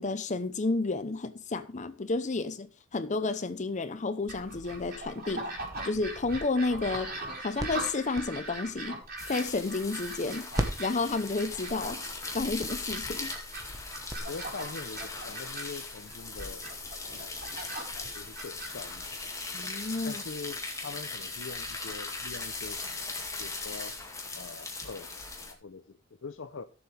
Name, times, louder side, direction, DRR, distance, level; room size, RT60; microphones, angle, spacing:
voice 1, 0.0-5.5 5.8-7.1 7.4-9.0 9.3-10.5 10.8-12.0 12.3-13.3 19.5-20.2, left 3 dB, 35° left, 0.7 m, -31 dB
sound 1, 4.3-19.5, right 2 dB, 50° right, 4.2 m, -41 dB
sound 2, 6.6-10.2 10.5-14.2, right 1 dB, 15° right, 1.3 m, -39 dB
sound 3, 9.2-25.5, left 3 dB, 15° left, 2.2 m, -39 dB
voice 2, 14.2-16.7 17.0-19.3 20.0-24.0 24.3-26.6, left 4 dB, 70° left, 0.7 m, -44 dB
16.5 x 7.1 x 3.4 m
head